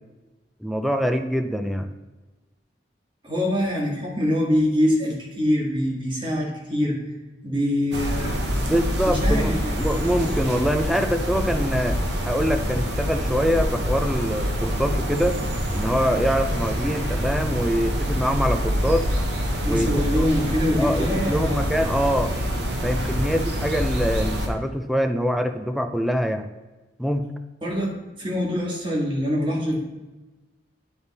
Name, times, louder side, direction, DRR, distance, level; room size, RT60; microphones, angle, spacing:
voice 1, 0.6-1.9 8.6-12.0 12.2-15.4 15.7-19.1 19.7-20.3 20.8-22.3 22.8-26.5 27.0-27.3, equal, ahead, 6 dB, 0.4 m, -24 dB
voice 2, 3.2-7.0 7.4-8.4 9.0-9.7 19.6-21.7 27.6-29.8, equal, 25° right, -3 dB, 1.7 m, -24 dB
sound 1, 7.9-24.5, equal, 70° right, 1.1 m, -26 dB
9.6 x 3.5 x 4.1 m, 1.2 s
head